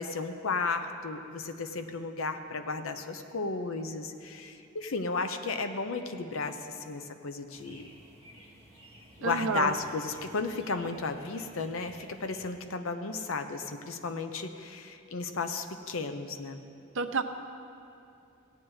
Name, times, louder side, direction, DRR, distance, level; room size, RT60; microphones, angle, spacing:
voice 1, 0.0-7.9 9.2-16.6, left 3 dB, 90° left, 8 dB, 0.7 m, -34 dB
sound 1, 7.5-12.5, equal, 30° left, 1.9 m, -54 dB
voice 2, 9.2-9.7 16.9-17.2, right 4 dB, 70° right, 7 dB, 0.6 m, -29 dB
17.5 x 8.9 x 3.2 m, 2.5 s
head